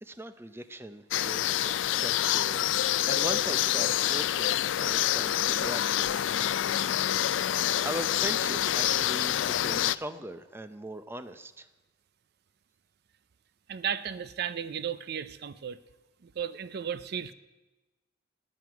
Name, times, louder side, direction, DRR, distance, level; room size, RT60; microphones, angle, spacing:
voice 1, 0.0-6.2 7.8-11.7, right 1 dB, 15° right, 11 dB, 0.6 m, -40 dB
sound 1, 1.1-10.0, left 12 dB, 80° left, 0.4 m, -27 dB
voice 2, 13.7-15.8 16.2-17.3, right 8 dB, 55° right, 15 dB, 0.5 m, -34 dB
10.5 x 9.7 x 9.2 m, 1.1 s
head